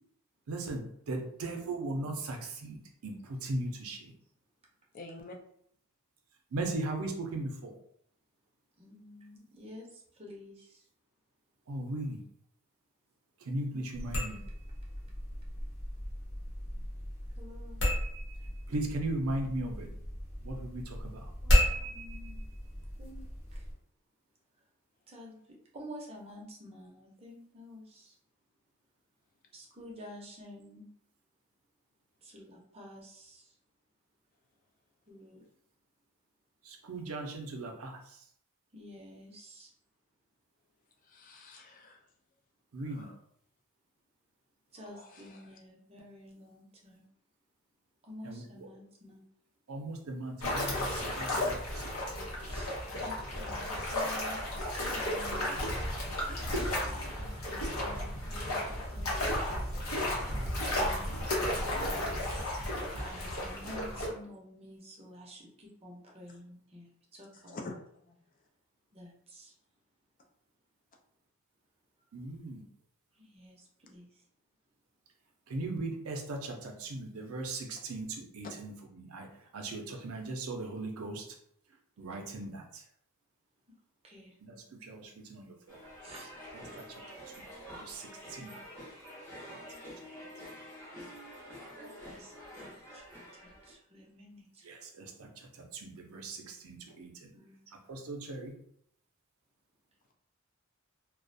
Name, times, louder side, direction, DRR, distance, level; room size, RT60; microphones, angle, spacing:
voice 1, 0.5-2.8 3.0-4.1 6.5-7.8 11.7-12.2 13.5-14.4 18.7-19.9 20.4-21.3 36.6-38.0 42.7-43.1 48.2-48.7 49.7-51.9 72.1-72.6 75.5-79.3 79.5-81.2 82.0-82.8 84.4-85.8 86.8-87.0 87.4-87.5 87.7-88.6 89.5-89.6 94.6-97.3 97.9-98.5, right 2 dB, 80° right, 2 dB, 0.5 m, -38 dB
voice 2, 4.9-5.3 41.0-42.0 42.8-43.2 44.8-45.6 67.3-68.2, left 2 dB, 40° left, 2 dB, 0.4 m, -48 dB
voice 3, 8.8-10.8 13.7-14.1 17.4-17.8 21.4-22.5 23.0-23.2 23.5-23.6 25.1-28.1 29.5-30.9 32.2-33.5 35.1-35.4 38.7-39.7 44.7-47.0 48.0-49.2 52.5-54.4 54.7-55.4 56.5-59.3 60.3-61.2 61.5-62.6 62.9-67.6 68.9-69.5 73.2-74.1 79.9-80.0 84.0-84.3 86.0-86.3 92.0-94.8 97.3-97.8, left 1 dB, 30° right, -2 dB, 0.6 m, -50 dB
sound 1, 13.9-23.7, equal, 60° left, 0.8 m, -33 dB
sound 2, 50.4-64.1, left 1 dB, 90° left, 0.8 m, -33 dB
sound 3, 85.7-93.7, equal, 10° left, 0.7 m, -48 dB
2.3 x 2.1 x 2.6 m, 0.69 s
head